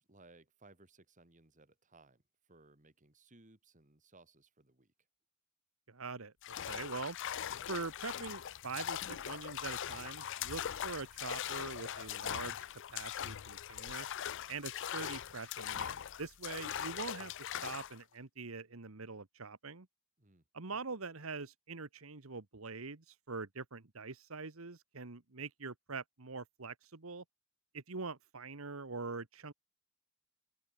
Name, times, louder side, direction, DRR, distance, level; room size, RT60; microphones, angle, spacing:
voice 1, 0.0-2.2 2.5-4.9 20.2-20.8, right 2 dB, 35° right, 2.7 m, -63 dB
voice 2, 5.9-6.3 6.7-7.2 7.7-12.5 12.9-14.1 14.5-19.9 20.5-27.2 27.7-29.5, right 4 dB, 70° right, 1.4 m, -44 dB
sound 1, 6.4-18.0, left 10 dB, 60° left, 0.5 m, -41 dB
open air
head